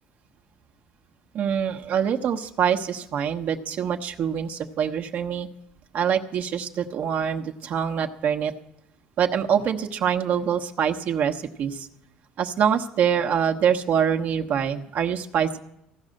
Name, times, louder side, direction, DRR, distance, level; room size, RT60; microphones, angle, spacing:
voice 1, 1.3-5.5 5.9-8.5 9.2-11.9 12.4-15.6, right 8 dB, 55° right, 5 dB, 1.1 m, -25 dB
15.5 x 9.7 x 6.5 m, 0.79 s
supercardioid pair, 95°, 3 cm